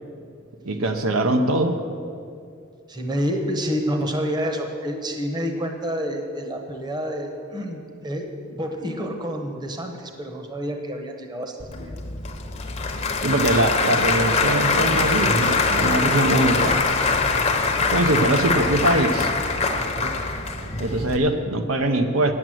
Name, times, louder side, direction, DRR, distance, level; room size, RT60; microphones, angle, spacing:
voice 1, 0.6-1.8 13.2-16.8 17.9-19.3 20.8-22.3, right 1 dB, 75° right, 6 dB, 0.7 m, -22 dB
voice 2, 2.9-12.0 19.8-20.1, equal, 20° right, 4 dB, 1.0 m, -28 dB
Applause / Crowd, 11.6-21.2, left 4 dB, 30° left, 0.8 m, -23 dB
9.1 x 7.9 x 7.7 m, 2.3 s
head